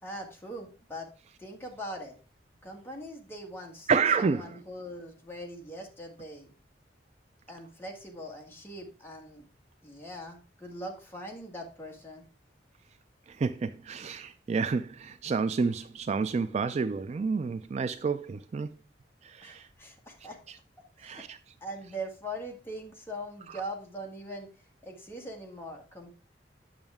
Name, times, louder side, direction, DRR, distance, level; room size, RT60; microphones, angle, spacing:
voice 1, 0.0-1.1 1.4-2.1 2.6-3.9 4.2-6.5 7.5-9.4 9.8-12.2 19.4-20.4 21.0-21.2 21.6-24.5 24.8-26.1, equal, 15° left, 1.6 m, -41 dB
voice 2, 3.9-4.5 13.4-18.7 19.2-19.6 21.0-21.4, right 5 dB, 35° right, 0.3 m, -29 dB
8.9 x 6.2 x 3.5 m
head